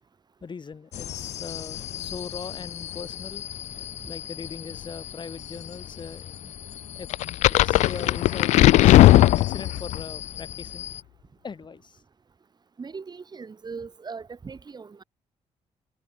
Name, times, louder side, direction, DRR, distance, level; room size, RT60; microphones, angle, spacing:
voice 1, 0.4-3.4 4.1-6.4 6.9-7.1 7.5-10.9 11.4-12.0, left 5 dB, 40° left, 6.2 m, -40 dB
sound 1, 0.9-11.0, left 11 dB, 75° left, 3.8 m, -38 dB
sound 2, 7.1-10.0, left 16 dB, 90° left, 0.4 m, -17 dB
voice 2, 12.8-15.0, right 5 dB, 35° right, 4.3 m, -39 dB
cardioid pair, 85°, 12 cm